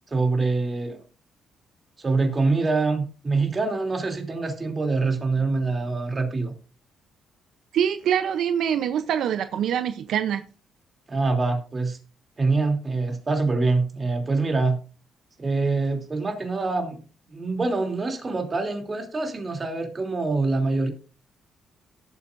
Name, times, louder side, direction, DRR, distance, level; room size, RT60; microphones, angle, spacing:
voice 1, 0.1-1.0 2.0-6.5 11.1-12.0 12.4-14.8 15.4-17.0 17.3-20.9, right 3 dB, 30° right, 3.0 m, -25 dB
voice 2, 7.7-10.4, right 9 dB, 75° right, 0.6 m, -24 dB
18.0 x 7.3 x 2.6 m
cardioid pair, 90°, 0 cm